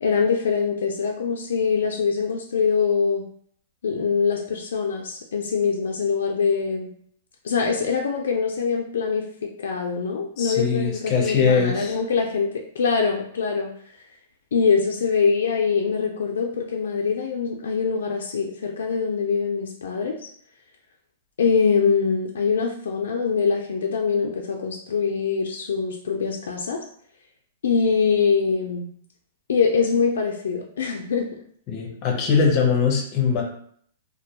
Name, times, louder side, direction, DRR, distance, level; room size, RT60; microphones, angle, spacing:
voice 1, 0.0-3.3 3.8-6.9 7.4-14.0 14.5-20.3 21.4-26.8 27.6-28.9 29.5-31.4, left 5 dB, 85° left, 1 dB, 0.3 m, -23 dB
voice 2, 10.4-12.0 31.7-33.4, left 6 dB, 35° left, 1 dB, 0.6 m, -21 dB
2.2 x 2.1 x 2.8 m, 0.62 s
hypercardioid pair, 150°, 0 cm